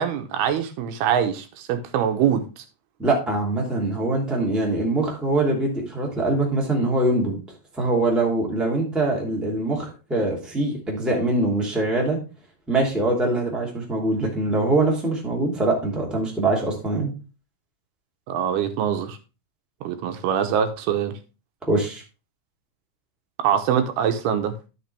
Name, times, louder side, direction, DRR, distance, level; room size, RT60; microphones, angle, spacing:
voice 1, 0.0-2.6 18.3-19.2 19.8-21.1 23.4-24.5, right 8 dB, 80° right, 2.7 m, -23 dB
voice 2, 3.0-7.4 7.8-12.2 12.7-17.1 21.6-22.0, right 2 dB, ahead, 1.9 m, -23 dB
12.5 x 5.9 x 3.3 m
omnidirectional pair, 4.6 m